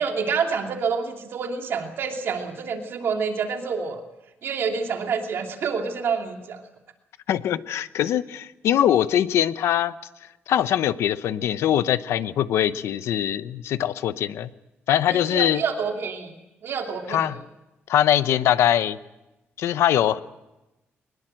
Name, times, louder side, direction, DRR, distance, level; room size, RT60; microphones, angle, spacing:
voice 1, 0.0-4.0 4.4-6.6 15.1-16.3 16.6-17.4, right 6 dB, 60° right, 3 dB, 2.8 m, -28 dB
voice 2, 7.3-9.9 10.5-14.5 14.9-15.6 17.1-17.4 17.9-19.0 19.6-20.2, left 11 dB, 90° left, 13 dB, 0.9 m, -22 dB
23.0 x 21.0 x 7.7 m, 0.98 s
cardioid pair, 145°, 4 cm